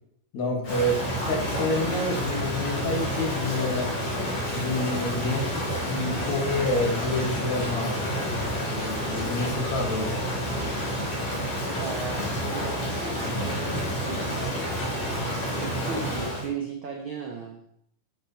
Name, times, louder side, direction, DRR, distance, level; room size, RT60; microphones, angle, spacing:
voice 1, 0.3-3.9 4.5-8.0 8.3-10.2, left 2 dB, 65° left, -1 dB, 3.1 m, -28 dB
Rain, 0.6-16.5, equal, 85° left, 4.7 m, -29 dB
voice 2, 11.6-14.7 15.5-17.6, right 4 dB, 75° right, 1 dB, 1.1 m, -36 dB
10.0 x 7.3 x 3.2 m, 0.73 s
omnidirectional pair, 3.6 m